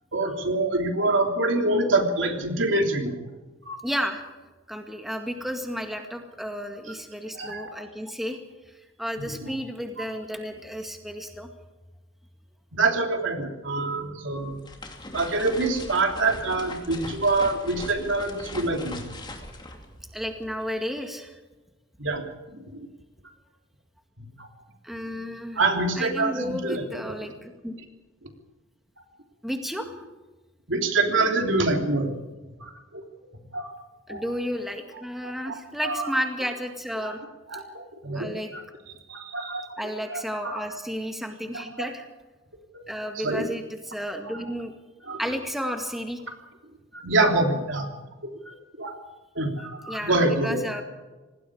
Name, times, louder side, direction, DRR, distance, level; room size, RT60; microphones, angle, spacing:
voice 1, 0.1-3.2 3.7-3.8 7.3-7.7 9.2-9.5 12.7-14.6 15.1-19.0 22.0-22.2 22.7-22.9 24.2-24.5 25.5-27.0 28.2-28.3 30.7-32.1 32.5-33.0 33.5-33.7 34.1-34.2 35.2-36.1 37.0-37.2 37.5-38.6 39.1-39.7 40.1-40.5 41.5-41.9 42.7-42.8 43.1-43.5 44.3-44.4 45.1-45.2 46.9-47.9 48.4-49.0 49.3-50.6, right 2 dB, 65° right, 3 dB, 3.3 m, -26 dB
voice 2, 3.8-4.2 4.7-8.4 8.7-11.5 20.1-21.4 24.8-25.6 26.0-27.7 29.4-30.0 34.1-37.2 38.1-38.5 39.8-42.1 42.9-44.7 45.2-46.2 49.9-50.8, equal, ahead, 3 dB, 2.0 m, -32 dB
sound 1, 14.3-20.7, left 2 dB, 20° left, 2.8 m, -40 dB
26.5 x 20.0 x 4.9 m, 1.2 s
head